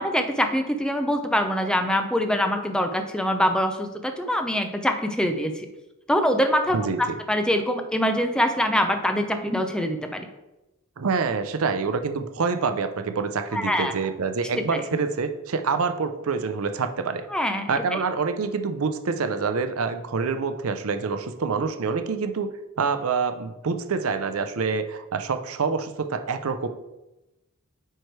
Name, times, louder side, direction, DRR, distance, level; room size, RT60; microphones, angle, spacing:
voice 1, 0.0-5.7 6.1-10.3 13.5-13.9 14.5-15.0 17.3-18.0, equal, 5° left, 6 dB, 0.5 m, -24 dB
voice 2, 6.7-7.2 11.0-17.2 17.7-22.5 22.8-26.7, right 5 dB, 75° right, 8 dB, 0.6 m, -26 dB
9.1 x 3.2 x 4.6 m, 0.99 s
head